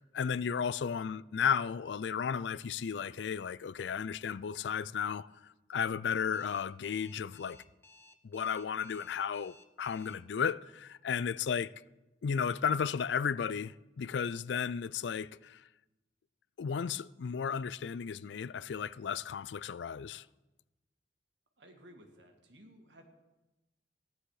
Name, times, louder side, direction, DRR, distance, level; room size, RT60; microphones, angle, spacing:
voice 1, 0.0-7.6 8.2-11.7 12.2-15.7 16.6-20.3, left 7 dB, 75° left, 0.4 m, -34 dB
Alarm, 6.3-10.1, left 2 dB, 15° left, 0.7 m, -58 dB
voice 2, 21.6-23.0, equal, 80° right, 2.1 m, -56 dB
15.5 x 11.5 x 4.9 m
head